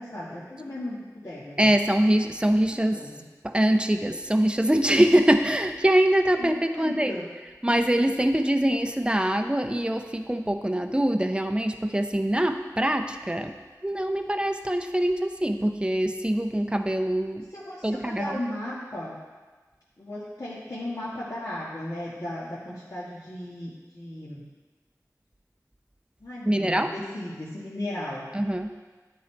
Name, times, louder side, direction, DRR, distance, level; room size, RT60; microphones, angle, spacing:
voice 1, 0.0-1.6 2.7-3.1 6.4-7.2 17.5-19.2 20.0-24.4 26.2-28.3, left 1 dB, 60° left, -9 dB, 1.4 m, -36 dB
voice 2, 1.6-3.1 3.4-7.2 7.6-17.5 17.8-18.4 26.5-26.9 28.3-28.7, right 1 dB, 15° right, 7 dB, 0.5 m, -24 dB
10.5 x 3.9 x 4.4 m, 1.3 s
wide cardioid pair, 45°, 6 cm